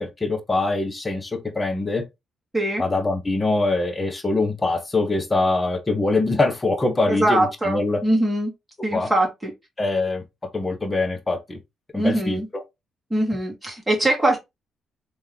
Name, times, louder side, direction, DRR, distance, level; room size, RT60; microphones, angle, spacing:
voice 1, 0.0-2.0 2.8-8.0 8.9-9.1 9.8-10.2 10.5-11.6 11.9-12.6, left 2 dB, 25° left, 1.0 m, -23 dB
voice 2, 7.1-8.5 8.8-9.5 11.9-12.5 13.1-14.4, right 1 dB, 5° right, 2.1 m, -22 dB
3.5 x 3.1 x 3.3 m
cardioid pair, 90°, 0 cm